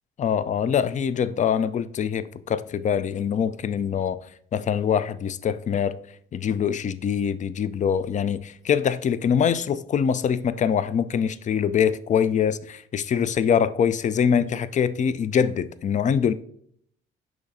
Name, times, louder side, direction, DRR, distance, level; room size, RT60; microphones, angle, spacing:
voice 1, 0.2-4.2 4.5-6.0 6.3-16.3, left 7 dB, 25° left, 0.4 m, -24 dB
11.0 x 3.9 x 2.7 m
figure-of-eight pair, 50°, 29 cm